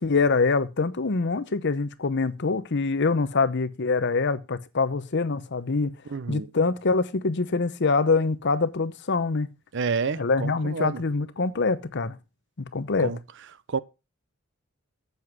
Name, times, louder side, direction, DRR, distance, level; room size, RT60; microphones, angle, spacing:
voice 1, 0.0-5.9 6.3-9.5 10.2-12.2 12.6-13.1, left 4 dB, 55° left, 0.8 m, -24 dB
voice 2, 6.1-6.5 9.7-11.0 13.0-13.2 13.7-13.8, right 5 dB, 60° right, 0.6 m, -29 dB
7.9 x 7.3 x 5.4 m
head